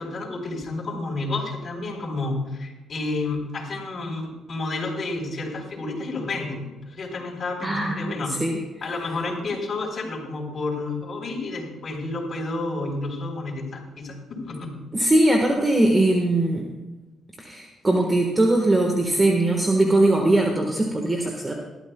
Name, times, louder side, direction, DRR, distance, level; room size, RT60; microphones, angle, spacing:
voice 1, 0.0-8.4 8.8-14.8, left 2 dB, 45° left, 0 dB, 4.0 m, -30 dB
voice 2, 7.6-8.0 8.4-8.6 14.9-16.7 17.4-21.5, right 1 dB, 20° right, 1 dB, 1.5 m, -20 dB
19.5 x 12.5 x 2.3 m, 1.1 s
cardioid pair, 90°, 0 cm